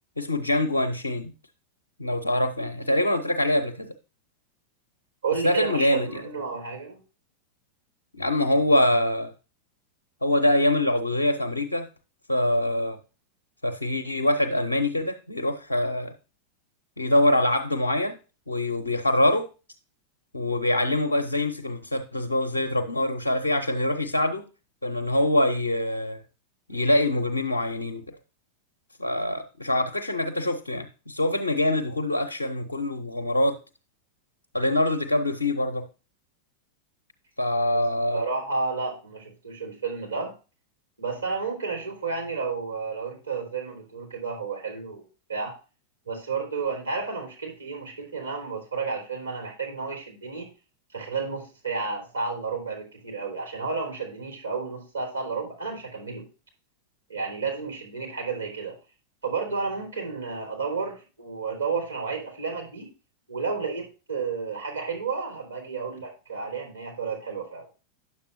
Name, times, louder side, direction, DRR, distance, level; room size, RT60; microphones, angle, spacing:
voice 1, 0.2-1.3 2.0-3.9 5.4-6.2 8.1-9.3 10.2-11.9 12.3-13.0 13.6-16.1 17.0-18.2 18.5-19.5 20.3-24.5 24.8-26.2 26.7-28.1 29.0-33.6 34.5-35.9 37.4-38.2, left 1 dB, 80° left, 0.7 m, -24 dB
voice 2, 5.2-7.0 38.1-40.3 41.0-45.0 45.3-45.5 46.1-50.5 50.9-56.3 57.1-58.8 59.2-62.9 63.3-67.7, right 4 dB, 80° right, 3.6 m, -31 dB
9.8 x 7.3 x 2.6 m
figure-of-eight pair, 90°, 0 cm